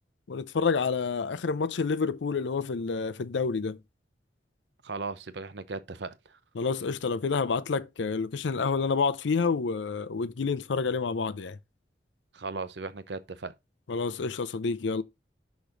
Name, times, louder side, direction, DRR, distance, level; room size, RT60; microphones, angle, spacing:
voice 1, 0.3-3.8 6.6-11.6 13.9-15.0, left 4 dB, 85° left, 0.5 m, -28 dB
voice 2, 4.8-6.4 12.3-13.5, right 3 dB, 70° right, 0.7 m, -37 dB
6.2 x 5.1 x 3.8 m
head